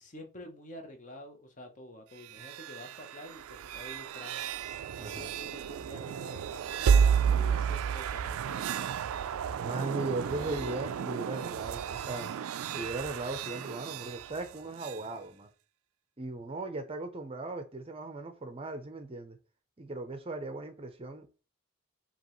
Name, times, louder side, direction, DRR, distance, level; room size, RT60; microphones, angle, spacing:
voice 1, 0.0-4.4 5.0-6.9 7.3-8.9, left 1 dB, 35° left, 0.9 m, -48 dB
sound 1, 2.2-15.0, right 7 dB, 90° right, 0.3 m, -32 dB
voice 2, 5.0-5.3 9.6-12.3 12.7-15.5 16.2-19.4 19.8-21.4, right 2 dB, 25° right, 0.5 m, -38 dB
5.2 x 2.9 x 3.1 m
head